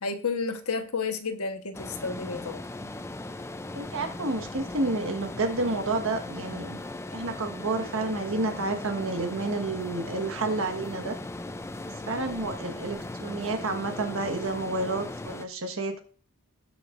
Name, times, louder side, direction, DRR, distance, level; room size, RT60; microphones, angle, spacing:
voice 1, 0.0-2.6, left 4 dB, 70° left, 6 dB, 1.2 m, -31 dB
sound 1, 1.7-15.5, left 2 dB, 10° left, 0.4 m, -38 dB
voice 2, 3.7-6.8 7.1-11.2 12.1-16.0, right 2 dB, 65° right, 6 dB, 1.4 m, -30 dB
18.5 x 6.6 x 2.5 m, 0.39 s
head